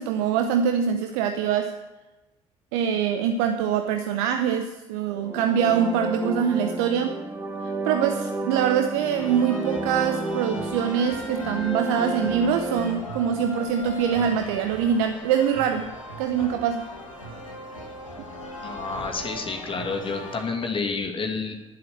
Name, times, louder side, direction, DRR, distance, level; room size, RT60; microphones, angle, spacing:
voice 1, 0.0-1.7 2.7-7.2 7.6-15.9 16.2-16.9, right 8 dB, 65° right, 7 dB, 0.7 m, -24 dB
sound 1, 5.1-13.0, right 1 dB, 10° right, 2.1 m, -31 dB
sound 2, 9.2-20.4, equal, 85° left, 1.7 m, -38 dB
voice 2, 18.6-21.5, left 4 dB, 30° left, 2 dB, 2.3 m, -29 dB
11.0 x 7.8 x 8.7 m, 1.1 s
figure-of-eight pair, 50°, 17 cm